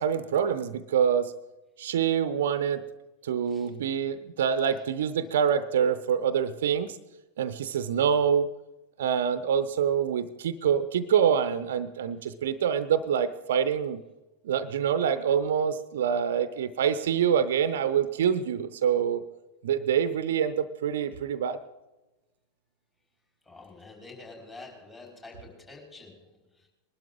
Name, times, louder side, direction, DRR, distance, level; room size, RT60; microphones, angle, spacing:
voice 1, 0.0-1.3 1.8-2.8 3.2-7.0 7.4-8.5 9.0-14.0 14.4-19.2 19.6-21.6, right 8 dB, 60° right, 14 dB, 0.6 m, -26 dB
voice 2, 23.4-26.7, left 3 dB, 20° left, 0 dB, 4.2 m, -48 dB
21.0 x 12.0 x 3.8 m, 1.0 s
figure-of-eight pair, 90°, 0 cm